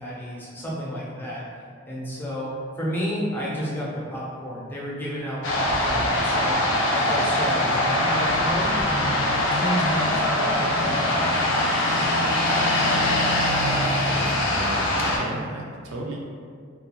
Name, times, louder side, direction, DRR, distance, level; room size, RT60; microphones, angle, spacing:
voice 1, 0.0-1.4 1.9-2.5 2.8-6.6 6.9-12.1, equal, 10° left, -7 dB, 0.5 m, -31 dB
sound 1, 5.4-15.2, left 1 dB, 70° left, 0.4 m, -22 dB
voice 2, 14.1-16.2, right 1 dB, 90° right, -1 dB, 0.5 m, -34 dB
2.4 x 2.2 x 2.9 m, 2.1 s
head